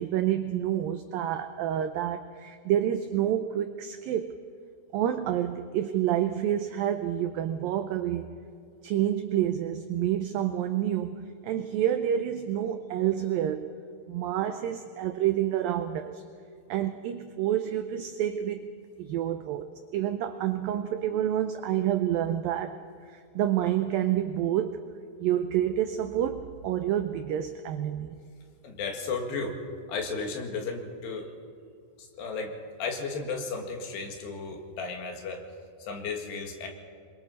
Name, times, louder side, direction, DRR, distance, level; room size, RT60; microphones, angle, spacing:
voice 1, 0.0-4.4 4.9-8.4 8.8-13.7 14.1-16.2 16.7-18.7 19.0-22.8 23.1-24.8 25.2-28.2, right 11 dB, 90° right, 8 dB, 2.0 m, -28 dB
voice 2, 28.6-29.6 29.9-31.3 32.0-35.4 35.8-36.7, left 4 dB, 75° left, 2 dB, 3.9 m, -34 dB
27.5 x 23.0 x 4.1 m, 2.3 s
omnidirectional pair, 4.9 m